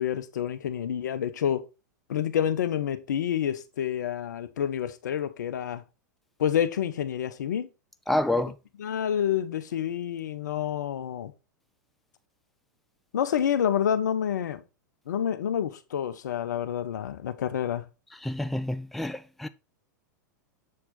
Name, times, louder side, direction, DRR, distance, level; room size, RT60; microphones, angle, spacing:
voice 1, 0.0-1.7 2.1-5.8 6.4-7.7 8.8-11.3 13.1-14.6 15.1-17.9, left 9 dB, 70° left, 0.8 m, -28 dB
voice 2, 8.1-8.5 18.2-19.5, left 1 dB, ahead, 0.4 m, -28 dB
7.4 x 4.3 x 3.9 m
figure-of-eight pair, 100°, 10 cm